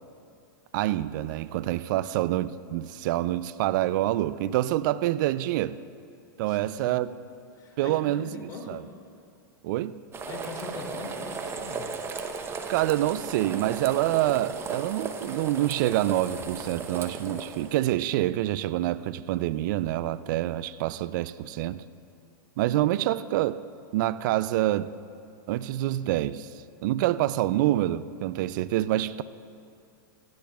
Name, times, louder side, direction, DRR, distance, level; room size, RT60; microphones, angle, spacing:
voice 1, 0.7-5.8 6.4-7.1 7.8-8.8 9.6-10.0 12.7-21.8 22.6-23.6 23.9-24.9 25.5-26.5 26.8-29.2, right 14 dB, 60° right, 0.4 m, -26 dB
voice 2, 6.4-7.1 7.5-8.8 10.3-11.9, left 4 dB, 35° left, 3.0 m, -41 dB
sound 1, 10.1-17.8, right 5 dB, 20° right, 0.8 m, -36 dB
18.0 x 13.5 x 2.4 m
hypercardioid pair, 115°, 12 cm